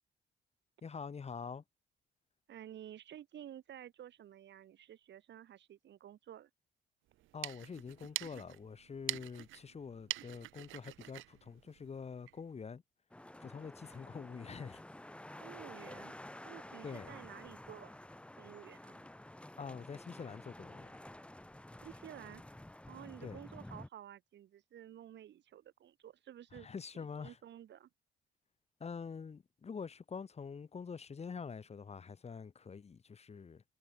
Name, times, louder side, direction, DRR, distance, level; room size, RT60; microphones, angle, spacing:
voice 1, 0.8-1.6 7.3-12.8 13.4-14.8 16.8-17.2 19.6-21.0 23.2-23.4 26.5-27.4 28.8-33.6, left 5 dB, 30° left, 1.1 m, -46 dB
voice 2, 2.5-6.5 15.4-16.1 16.4-18.1 18.4-19.1 21.8-22.4 22.9-26.7 26.9-27.9, right 11 dB, 65° right, 1.2 m, -52 dB
sound 1, 7.1-12.4, right 16 dB, 80° right, 0.6 m, -45 dB
sound 2, 13.1-23.9, left 1 dB, 5° left, 0.9 m, -51 dB
cardioid pair, 90°, 20 cm